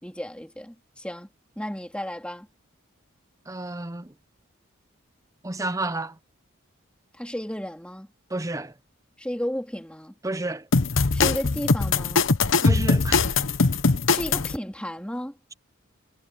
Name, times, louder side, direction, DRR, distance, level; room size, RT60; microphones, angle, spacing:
voice 1, 0.0-1.3 1.6-2.5 7.1-8.1 9.2-10.1 11.1-12.3 14.1-15.3, equal, 5° left, 3.1 m, -33 dB
voice 2, 3.5-4.1 5.4-6.1 8.3-8.7 10.2-10.7 12.6-13.4, right 2 dB, 15° right, 0.6 m, -30 dB
sound 1, 10.7-14.5, left 4 dB, 65° left, 1.0 m, -21 dB
head